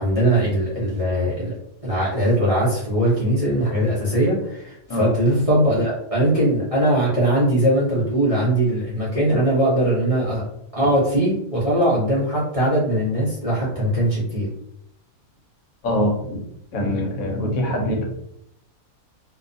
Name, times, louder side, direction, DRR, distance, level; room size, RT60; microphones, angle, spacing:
voice 1, 0.0-1.5 1.8-10.4 10.7-14.5, right 1 dB, 35° right, -8 dB, 0.6 m, -20 dB
voice 2, 15.8-16.4 16.7-18.0, equal, 70° left, 1 dB, 1.1 m, -23 dB
2.6 x 2.3 x 2.5 m, 0.75 s
omnidirectional pair, 1.5 m